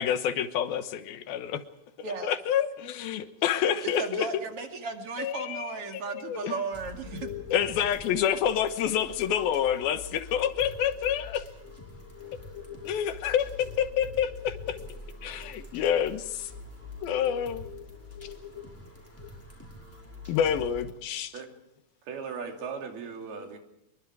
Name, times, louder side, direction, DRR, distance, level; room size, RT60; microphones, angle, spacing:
voice 1, 0.0-1.6 2.2-4.4 5.2-6.5 7.5-11.4 12.9-14.8 15.2-16.5 17.0-17.7 20.3-21.4, left 9 dB, 75° left, 3.0 m, -28 dB
voice 2, 4.0-7.3, right 4 dB, 45° right, 2.8 m, -35 dB
sound 1, 6.7-20.9, left 2 dB, 5° left, 5.4 m, -45 dB
sound 2, 7.0-19.5, left 11 dB, 25° left, 1.9 m, -46 dB
voice 3, 22.1-23.6, right 5 dB, 80° right, 4.8 m, -37 dB
25.5 x 23.5 x 4.8 m
omnidirectional pair, 4.4 m